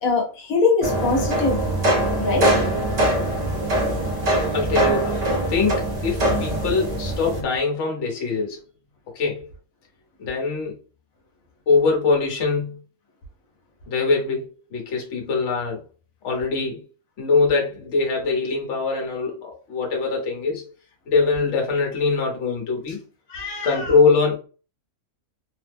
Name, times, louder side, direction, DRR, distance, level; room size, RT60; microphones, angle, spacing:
voice 1, 0.0-1.6 2.2-2.5 23.3-23.9, left 4 dB, 80° left, 1.3 m, -22 dB
sound 1, 0.8-7.4, right 1 dB, 45° right, 0.5 m, -22 dB
voice 2, 4.5-8.6 9.1-9.5 10.2-10.7 11.7-12.8 13.9-15.8 16.2-16.8 17.2-20.6 21.1-23.0 23.6-24.3, left 4 dB, 60° left, 1.2 m, -23 dB
3.2 x 2.0 x 3.4 m
omnidirectional pair, 1.4 m